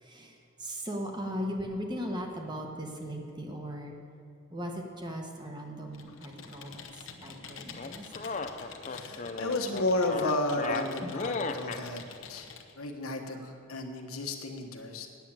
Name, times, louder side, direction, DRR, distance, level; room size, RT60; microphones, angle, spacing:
voice 1, 0.0-0.3 0.6-4.0 4.5-6.8 7.2-8.0 11.0-11.1 13.4-13.5, equal, 20° right, 1 dB, 1.1 m, -38 dB
Computer keyboard, 5.9-12.7, left 6 dB, 65° left, 0.9 m, -47 dB
sound 1, 7.7-11.8, left 4 dB, 35° left, 0.5 m, -35 dB
voice 2, 8.9-12.0 12.3-12.5 12.8-15.1, left 2 dB, 90° left, 3 dB, 1.3 m, -32 dB
9.4 x 7.4 x 8.8 m, 2.5 s
head